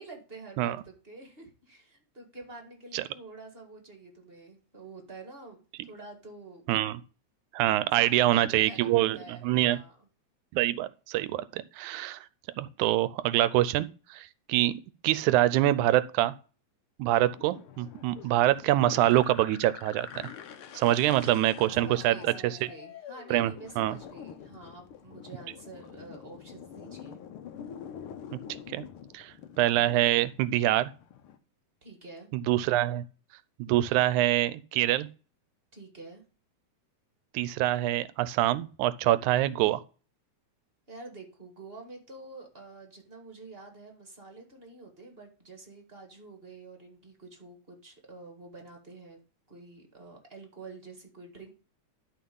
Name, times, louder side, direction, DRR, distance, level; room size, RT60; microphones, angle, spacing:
voice 1, 0.0-5.6 5.9-6.6 8.0-10.1 21.8-27.2 31.8-32.3 35.7-36.2 40.9-49.2 49.5-51.5, right 3 dB, 25° right, 1.4 m, -48 dB
voice 2, 6.7-7.0 7.5-9.8 10.5-12.2 12.6-14.7 15.0-16.3 17.0-20.1 20.7-22.6 23.3-24.0 28.7-28.8 29.1-30.9 32.3-33.0 33.6-35.1 37.3-39.8, right 14 dB, 85° right, 2.0 m, -25 dB
sound 1, 17.1-31.4, left 8 dB, 65° left, 1.4 m, -46 dB
12.0 x 4.3 x 5.3 m
omnidirectional pair, 3.4 m